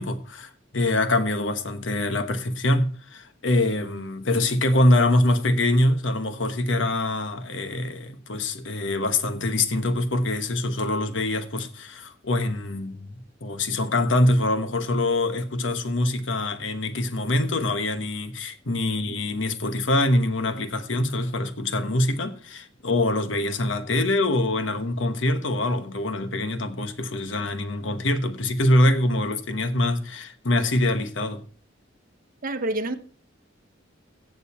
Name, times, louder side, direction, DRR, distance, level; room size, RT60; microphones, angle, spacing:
voice 1, 0.0-31.4, left 1 dB, 80° left, 1.2 m, -24 dB
voice 2, 32.4-33.0, right 1 dB, 50° right, 1.0 m, -27 dB
15.5 x 6.7 x 4.3 m
head